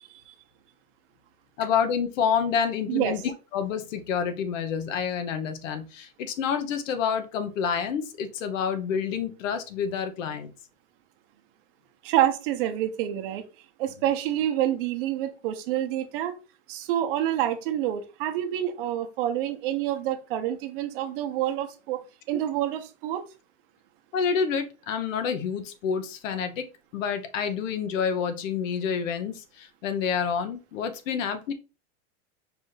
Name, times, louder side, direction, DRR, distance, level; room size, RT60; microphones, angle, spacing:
voice 1, 1.6-10.5 24.1-26.7 26.9-31.5, left 7 dB, 85° left, 9 dB, 0.9 m, -28 dB
voice 2, 12.0-13.4 13.8-16.3 16.7-22.0 22.3-23.2, right 12 dB, 45° right, 6 dB, 0.8 m, -27 dB
4.9 x 2.5 x 3.9 m, 0.32 s
supercardioid pair, 175°, 37 cm